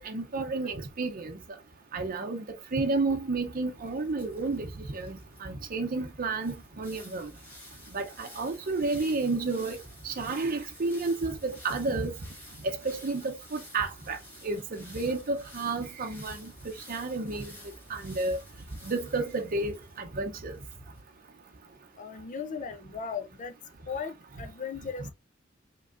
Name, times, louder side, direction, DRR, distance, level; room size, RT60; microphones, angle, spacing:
voice 1, 0.0-1.4 1.9-2.4 2.7-7.3 7.9-9.8 10.0-12.1 12.6-14.2 14.4-16.5 16.9-17.5 17.9-18.4 18.8-20.5 25.0-25.1, right 3 dB, 45° right, 0.6 m, -31 dB
sound 1, 3.2-21.0, equal, 10° left, 2.5 m, -51 dB
voice 2, 22.0-23.6 23.9-25.1, left 6 dB, 40° left, 0.5 m, -37 dB
5.0 x 3.1 x 2.5 m
head